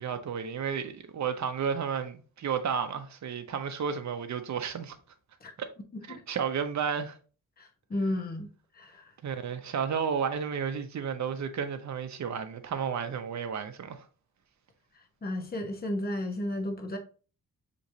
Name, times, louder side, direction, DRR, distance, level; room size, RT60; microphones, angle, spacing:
voice 1, 0.0-5.0 5.6-5.7 6.1-7.1 9.2-14.0, right 7 dB, 50° right, 0.8 m, -32 dB
voice 2, 7.6-8.5 8.7-9.1 15.2-17.0, left 1 dB, 25° left, 0.9 m, -33 dB
6.4 x 3.1 x 2.7 m
wide cardioid pair, 135°, 36 cm